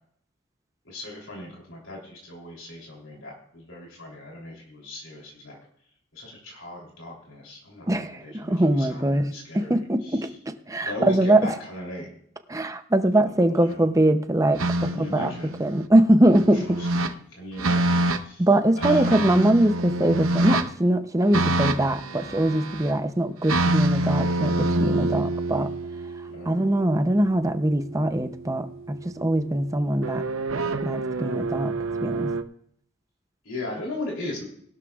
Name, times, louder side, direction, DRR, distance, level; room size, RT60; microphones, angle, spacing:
voice 1, 0.8-5.6 6.1-10.2 10.8-12.1 13.3-13.8 14.8-15.6 16.7-18.4 18.8-19.4 26.2-26.7 33.4-34.4, left 1 dB, 70° left, -1 dB, 3.3 m, -37 dB
voice 2, 7.9-10.3 10.7-11.5 12.5-15.3 15.6-16.8 18.4-25.7 26.1-30.2 30.8-31.7 32.0-32.3, right 1 dB, 15° right, 8 dB, 0.6 m, -22 dB
sound 1, 14.6-15.9 16.3-17.1 17.6-18.2 18.8-20.7 21.3-22.9 23.4-27.5 30.0-32.4, right 2 dB, 85° right, 0.8 m, -26 dB
19.5 x 12.5 x 2.4 m, 0.68 s
head